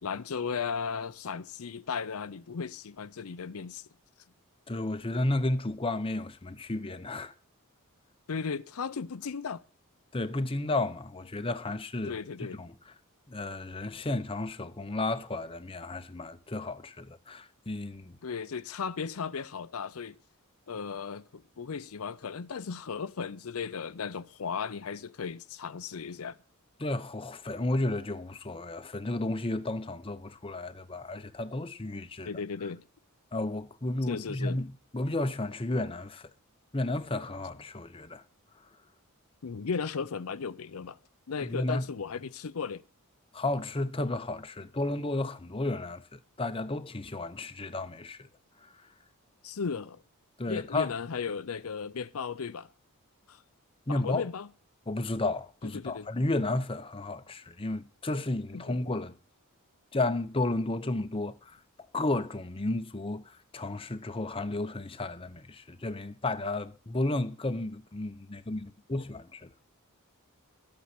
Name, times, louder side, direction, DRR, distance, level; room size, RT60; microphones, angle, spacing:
voice 1, 0.0-3.9 8.3-9.6 12.0-12.6 18.2-20.2 20.7-26.4 32.2-32.8 34.0-34.6 39.4-41.0 41.3-42.8 49.4-50.0 50.5-52.7 53.3-53.4 53.9-54.5 55.7-56.1 58.5-58.8, left 5 dB, 70° left, 0.6 m, -36 dB
voice 2, 4.7-7.3 10.1-12.7 13.3-18.2 26.8-32.3 33.3-36.3 36.7-38.2 41.4-41.8 43.3-48.3 48.6-48.9 50.4-50.9 53.9-54.2 54.9-59.1 59.9-61.6 61.9-69.5, left 2 dB, 25° left, 0.8 m, -33 dB
12.5 x 8.4 x 5.9 m
head